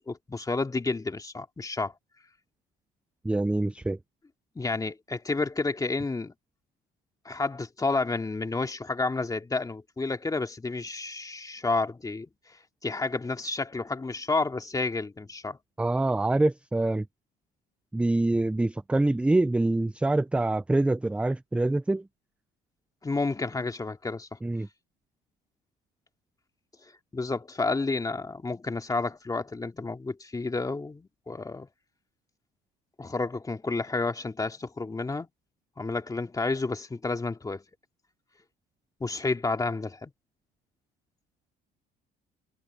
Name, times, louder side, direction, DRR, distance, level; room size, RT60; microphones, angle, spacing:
voice 1, 0.0-1.9 4.6-6.3 7.2-12.3 12.8-15.6 23.0-24.3 27.1-31.7 33.0-35.3 35.8-37.6 39.0-40.1, left 3 dB, 15° left, 2.4 m, -30 dB
voice 2, 3.2-4.0 15.8-17.1 17.9-22.1 24.4-24.7, right 2 dB, 5° right, 0.4 m, -25 dB
cardioid pair, 115°, 20 cm